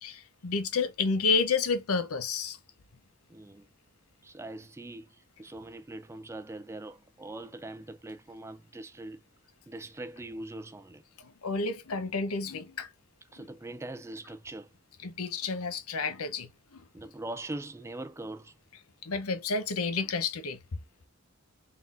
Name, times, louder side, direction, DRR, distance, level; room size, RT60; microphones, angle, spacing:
voice 1, 0.0-2.6 11.2-12.9 15.0-16.8 19.0-20.6, left 4 dB, 80° left, 0.8 m, -30 dB
voice 2, 3.3-3.7 4.2-9.2 9.7-11.0 13.3-14.7 16.9-18.5, right 2 dB, 10° right, 0.4 m, -42 dB
4.2 x 3.7 x 2.5 m
head